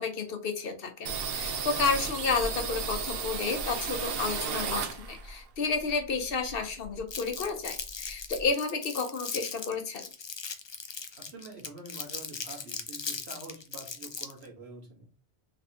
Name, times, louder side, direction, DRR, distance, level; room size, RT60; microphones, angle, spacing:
voice 1, 0.0-10.0, left 4 dB, 65° left, 5 dB, 1.0 m, -31 dB
sound 1, 1.1-5.4 5.7-7.1 7.4-7.5 7.8-8.5, right 5 dB, 70° right, 0.9 m, -34 dB
Crumpling crinkling, 7.1-14.5, left 5 dB, 45° left, 0.3 m, -38 dB
voice 2, 11.1-15.1, right 2 dB, 85° right, 0 dB, 1.6 m, -46 dB
3.4 x 3.2 x 2.7 m, 0.35 s
omnidirectional pair, 1.1 m